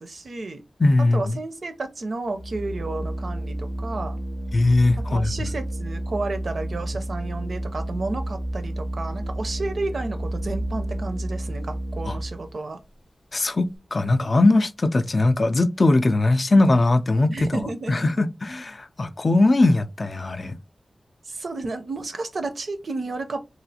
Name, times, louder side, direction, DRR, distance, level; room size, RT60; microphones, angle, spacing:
voice 1, 0.0-0.6 1.1-4.2 5.0-12.8 17.3-18.1 21.3-23.4, right 3 dB, 65° right, 0.5 m, -32 dB
voice 2, 0.8-1.4 4.5-5.5 12.1-12.2 13.3-20.6, left 2 dB, 45° left, 0.3 m, -20 dB
Organ, 2.3-12.6, right 1 dB, 85° left, 0.6 m, -31 dB
3.1 x 2.4 x 2.7 m
wide cardioid pair, 85°, 0 cm